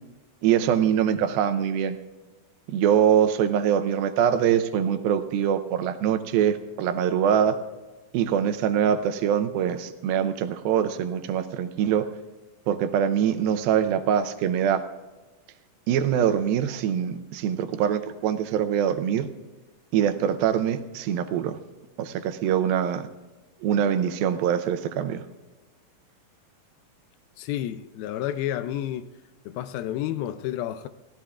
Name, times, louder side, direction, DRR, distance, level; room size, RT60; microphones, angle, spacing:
voice 1, 0.4-2.0 2.7-7.6 8.1-12.1 12.7-14.8 15.9-19.3 19.9-21.6 22.0-23.1 23.6-25.2, right 9 dB, 80° right, 2.6 m, -23 dB
voice 2, 27.4-29.1 29.5-30.9, left 12 dB, 85° left, 2.5 m, -30 dB
29.5 x 16.5 x 2.4 m
omnidirectional pair, 4.2 m